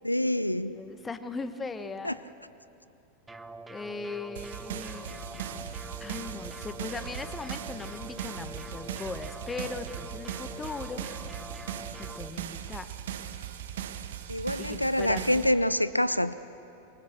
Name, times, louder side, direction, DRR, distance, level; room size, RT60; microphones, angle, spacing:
voice 1, 0.0-0.8 2.0-2.2 14.3-16.3, left 1 dB, 85° left, 16 dB, 0.4 m, -26 dB
voice 2, 0.7-2.2 3.7-5.1 6.0-11.1 12.0-12.9 14.6-15.4, left 4 dB, 15° left, 11 dB, 1.2 m, -39 dB
sound 1, 3.3-12.3, right 2 dB, 10° right, 0.9 m, -45 dB
sound 2, 4.4-15.5, right 10 dB, 55° right, 1.2 m, -39 dB
sound 3, 4.9-12.1, left 6 dB, 55° left, 2.3 m, -49 dB
24.5 x 23.0 x 6.7 m, 2.8 s
figure-of-eight pair, 90°, 0 cm